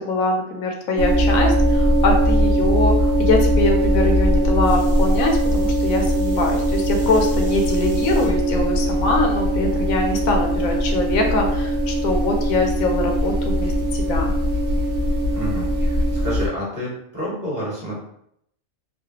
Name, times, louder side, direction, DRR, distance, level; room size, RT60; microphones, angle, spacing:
voice 1, 0.0-14.3, left 2 dB, 85° left, 2 dB, 1.0 m, -23 dB
sound 1, 1.0-16.5, equal, 80° right, 1.0 m, -20 dB
sound 2, 4.6-8.3 9.0-9.4 10.7-10.8, right 1 dB, 40° right, 1.0 m, -44 dB
voice 2, 15.3-18.0, equal, 25° right, -8 dB, 1.4 m, -29 dB
3.1 x 2.2 x 2.8 m, 0.72 s
omnidirectional pair, 1.4 m